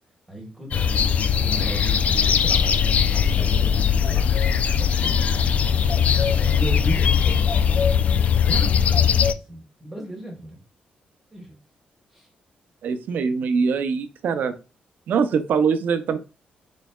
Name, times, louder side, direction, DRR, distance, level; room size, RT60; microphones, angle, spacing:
voice 1, 0.3-5.6 6.3-7.9 8.4-10.6 11.3-11.5 12.1-12.3, right 1 dB, 15° right, -2 dB, 1.4 m, -35 dB
sound 1, 0.7-9.3, left 7 dB, 50° left, 0.3 m, -20 dB
voice 2, 12.8-14.5 15.1-16.2, right 5 dB, 70° right, 10 dB, 0.6 m, -23 dB
4.2 x 3.9 x 2.3 m, 0.32 s
cardioid pair, 125°, 3 cm